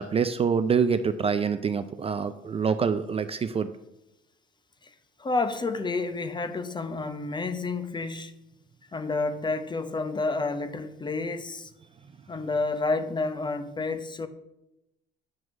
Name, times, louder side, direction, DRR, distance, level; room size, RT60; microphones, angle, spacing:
voice 1, 0.0-3.7, right 6 dB, 30° right, 0.4 m, -26 dB
voice 2, 5.2-8.3 8.9-11.7 12.3-14.3, left 3 dB, 20° left, 0.7 m, -30 dB
7.5 x 3.1 x 6.1 m
supercardioid pair, 70°, 21 cm